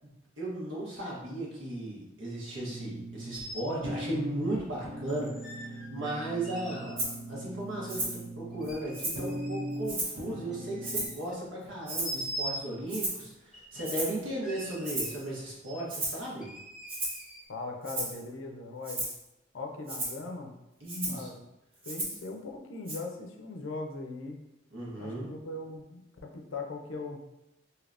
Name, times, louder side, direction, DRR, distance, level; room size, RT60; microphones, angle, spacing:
voice 1, 0.4-16.5 20.8-21.3 24.7-25.3, right 1 dB, 80° right, -5 dB, 1.2 m, -36 dB
sound 1, 2.6-11.1, right 1 dB, 50° right, 1.0 m, -40 dB
sound 2, 3.3-3.7 5.1-6.9 7.4-7.5 8.5-9.8 10.4-11.3 11.8-12.7 13.5-14.0 14.4-15.3 15.6-15.8 16.4-17.4, right 1 dB, 5° right, 0.4 m, -42 dB
Rattle (instrument), 7.0-7.2 7.9-8.2 8.6-9.3 9.8-10.2 10.8-11.2 11.9-12.3 12.9-13.3 13.8-14.2 14.8-15.2 15.9-16.2 16.9-17.3 17.8-18.2 18.8-19.2 19.9-20.2 20.9-21.2 21.8-22.3 22.9-23.0, right 1 dB, 30° right, 0.8 m, -34 dB
voice 2, 17.5-19.0 19.5-20.5 21.1-21.4 21.9-24.4 25.0-27.2, left 3 dB, 85° left, 3 dB, 0.5 m, -40 dB
3.3 x 2.8 x 2.5 m, 0.91 s
head